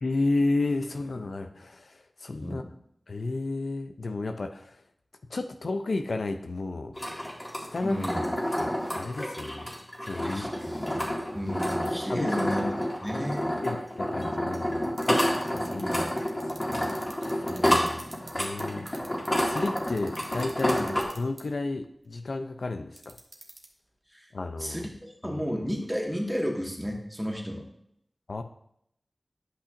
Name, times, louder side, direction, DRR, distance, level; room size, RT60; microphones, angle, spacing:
voice 1, 0.0-2.6 3.1-4.8 5.3-7.0 7.6-8.0 8.6-9.7 10.0-10.5 12.1-12.5 13.6-14.9 15.5-15.9 16.6-16.9 17.2-17.6 18.4-19.1 19.4-20.9 21.1-23.2 24.3-24.9 25.3-25.4 28.3-28.4, left 2 dB, 85° left, 8 dB, 0.4 m, -32 dB
voice 2, 2.4-2.7 7.8-8.2 10.2-11.1 11.3-12.6 13.0-13.5 15.6-16.1 17.5-18.0 20.8-20.9 24.1-24.2 24.6-24.9 25.2-27.6, equal, ahead, -1 dB, 1.7 m, -33 dB
sound 1, 7.0-21.0, equal, 30° left, 2.0 m, -29 dB
sound 2, 15.0-18.6 18.9-21.4 23.0-23.7, right 2 dB, 70° right, 1.2 m, -45 dB
11.0 x 5.7 x 2.5 m, 0.73 s
wide cardioid pair, 45°, 0 cm